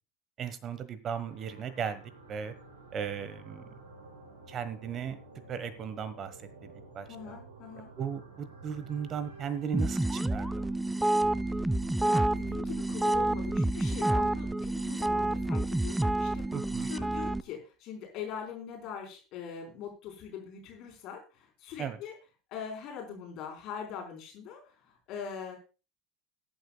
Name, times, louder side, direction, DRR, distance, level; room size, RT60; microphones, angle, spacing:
voice 1, 0.4-2.0 2.3-2.5 2.9-3.6 4.5-5.2 5.5-7.4 8.0-10.7 16.5-16.9 21.8-22.0, right 7 dB, 35° right, 14 dB, 1.3 m, -36 dB
sound 1, 1.1-17.6, right 3 dB, 80° right, 5.0 m, -51 dB
voice 2, 7.1-7.9 11.5-11.7 12.0-22.1 22.5-25.6, left 7 dB, 50° left, 2 dB, 4.6 m, -42 dB
sound 2, 9.7-17.4, right 2 dB, 5° right, 0.4 m, -29 dB
21.5 x 8.7 x 2.3 m, 0.31 s
figure-of-eight pair, 75°, 0 cm